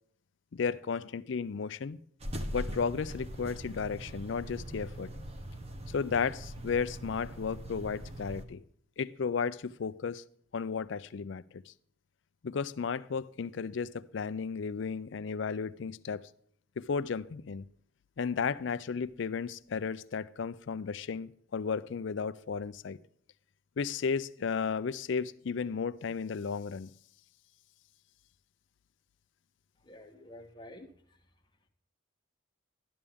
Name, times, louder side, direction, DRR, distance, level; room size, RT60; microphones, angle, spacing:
voice 1, 0.5-2.0 2.5-5.1 5.9-8.6 9.0-10.2 10.5-11.7 12.4-16.3 16.8-17.6 18.2-23.0 23.8-26.9, left 5 dB, 60° left, 0.4 m, -34 dB
sound 1, 2.2-8.4, equal, 30° right, 0.9 m, -41 dB
voice 2, 29.8-30.9, left 1 dB, 20° left, 1.2 m, -49 dB
12.5 x 11.0 x 3.5 m
head